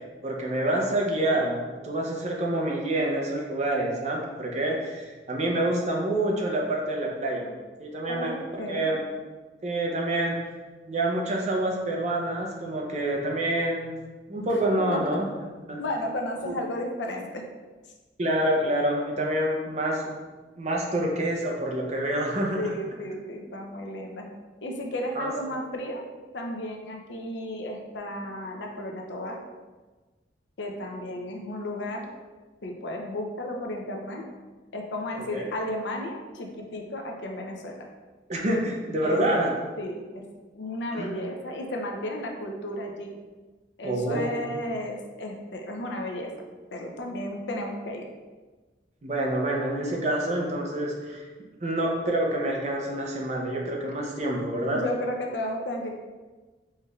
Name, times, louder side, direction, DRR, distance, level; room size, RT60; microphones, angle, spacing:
voice 1, 0.2-7.5 7.8-9.1 9.6-10.4 10.9-13.9 14.3-15.8 16.5-16.6 18.2-20.3 20.6-22.7 25.2-25.3 35.1-35.5 38.3-39.5 40.9-41.1 43.8-44.4 49.0-51.2 51.6-54.8, right 1 dB, 40° right, -1 dB, 0.6 m, -27 dB
voice 2, 8.1-8.9 14.5-15.2 15.8-17.4 22.6-24.3 24.6-26.0 26.3-29.4 30.6-32.1 32.6-34.2 34.7-37.9 39.0-39.3 39.8-40.2 40.5-43.1 43.8-46.3 46.7-48.1 54.7-55.9, left 1 dB, 80° left, 2 dB, 0.5 m, -33 dB
4.4 x 3.1 x 2.3 m, 1.3 s
head